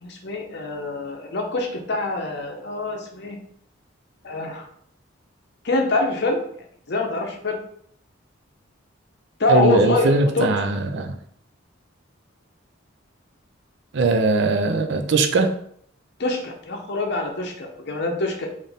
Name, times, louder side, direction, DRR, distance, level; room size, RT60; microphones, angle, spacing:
voice 1, 0.0-3.4 4.2-4.6 5.6-6.4 6.9-7.6 9.4-10.5 16.2-18.5, left 2 dB, 60° left, 2 dB, 0.8 m, -25 dB
voice 2, 9.5-11.1 13.9-15.5, right 3 dB, 60° right, 6 dB, 0.5 m, -20 dB
4.0 x 2.6 x 3.5 m, 0.66 s
head